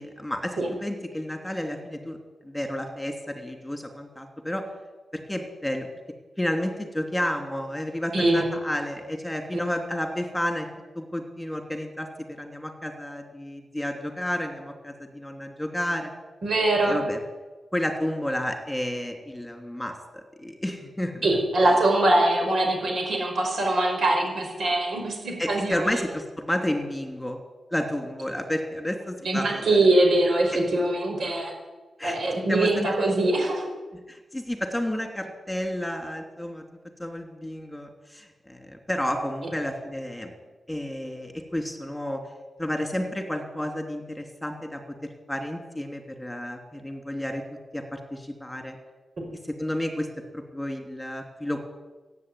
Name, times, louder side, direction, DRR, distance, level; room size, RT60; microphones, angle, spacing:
voice 1, 0.0-2.2 2.4-4.6 5.3-5.9 6.4-10.7 10.9-12.1 12.4-16.1 16.8-17.2 17.7-21.3 25.4-27.4 27.7-29.8 30.5-30.6 32.0-33.1 34.1-36.6 37.0-40.3 40.7-42.2 42.6-44.8 45.3-47.4 47.7-48.8 49.4-50.1 50.3-51.6, left 1 dB, 5° left, 4 dB, 3.0 m, -31 dB
voice 2, 16.4-16.9 21.2-26.0 29.3-31.5 32.0-33.7, right 2 dB, 65° right, 2 dB, 5.2 m, -23 dB
15.0 x 9.3 x 9.6 m, 1.2 s
cardioid pair, 80°, 0 cm